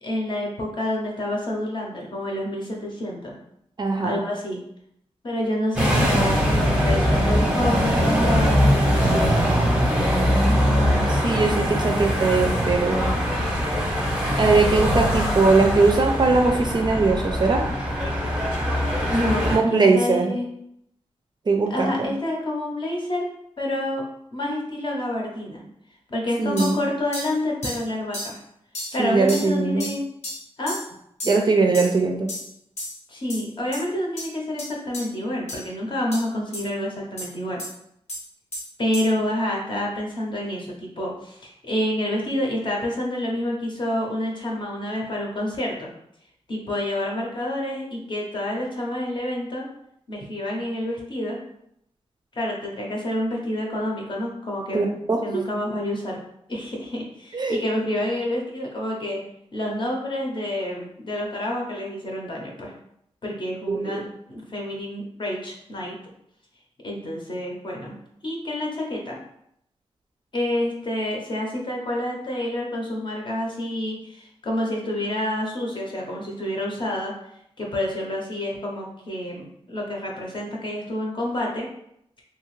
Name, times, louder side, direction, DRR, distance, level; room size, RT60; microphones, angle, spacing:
voice 1, 0.0-3.3 4.0-4.6 5.2-9.4 19.1-20.5 21.7-23.2 23.6-24.0 24.3-25.6 26.1-28.4 28.9-30.1 30.6-30.8 33.1-37.6 38.8-45.9 46.5-49.7 50.1-51.4 52.3-54.8 55.2-56.2 56.5-59.2 59.5-62.7 63.2-66.0 66.8-68.0 68.2-69.2 70.3-77.1 77.6-81.7, left 1 dB, 45° left, -1 dB, 0.7 m, -28 dB
voice 2, 3.8-4.2 10.4-13.1 14.4-17.7 19.4-20.3 21.5-22.1 26.4-26.8 29.0-29.9 31.2-32.3 54.7-55.4 57.3-57.6 63.7-64.1, right 3 dB, 40° right, 2 dB, 0.4 m, -21 dB
sound 1, 5.8-19.6, equal, 10° right, 0.7 m, -22 dB
sound 2, 26.6-26.8 27.1-27.3 27.6-27.8 28.1-28.3 28.7-28.9 29.3-29.5 29.8-29.9 30.2-30.4 30.7-30.9 31.2-31.4 31.7-31.9 32.3-32.5 32.8-33.0 33.3-33.4 33.7-33.8 34.2-34.3 34.6-34.7 34.9-35.0 35.5-35.6 36.1-36.2 36.5-36.6 37.2-37.3 37.6-37.7 38.1-38.2 38.5-38.6 38.9-39.1, left 1 dB, 85° left, 1.1 m, -32 dB
2.8 x 2.3 x 3.1 m, 0.74 s
wide cardioid pair, 115°, 11 cm